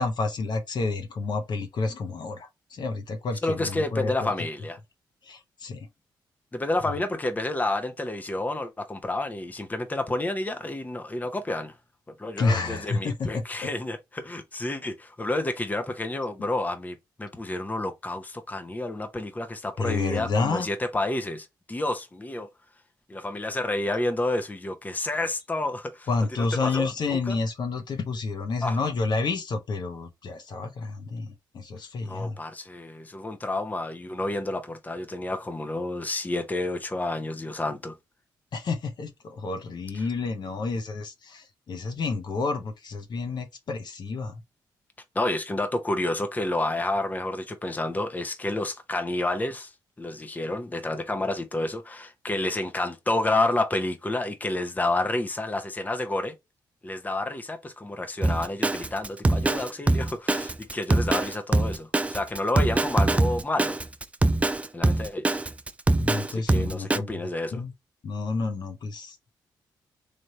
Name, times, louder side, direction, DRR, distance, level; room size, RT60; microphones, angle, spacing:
voice 1, 0.0-4.3 5.2-5.9 12.4-13.4 19.8-20.7 26.1-32.4 38.5-44.4 66.0-67.7 68.0-69.2, left 3 dB, 55° left, 0.9 m, -30 dB
voice 2, 3.4-4.8 6.5-11.7 12.2-22.5 23.1-26.1 26.4-27.3 28.6-28.8 32.0-37.9 45.1-49.7 50.0-56.3 56.8-63.8 64.7-65.2 66.3-67.6, left 2 dB, 20° left, 0.7 m, -30 dB
Drum kit, 58.2-67.0, right 2 dB, 15° right, 0.3 m, -23 dB
3.3 x 2.6 x 4.1 m
cardioid pair, 70°, 9 cm